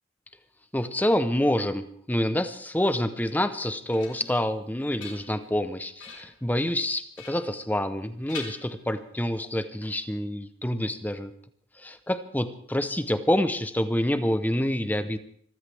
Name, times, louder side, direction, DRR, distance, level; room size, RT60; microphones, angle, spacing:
voice 1, 0.7-11.3 11.8-15.2, left 1 dB, 10° left, 11 dB, 0.8 m, -27 dB
sound 1, 3.4-4.4 4.8-5.6 6.0-6.4 7.1-8.0 8.3-9.2, left 5 dB, 85° left, 3.8 m, -44 dB
25.0 x 14.5 x 3.5 m, 0.63 s
head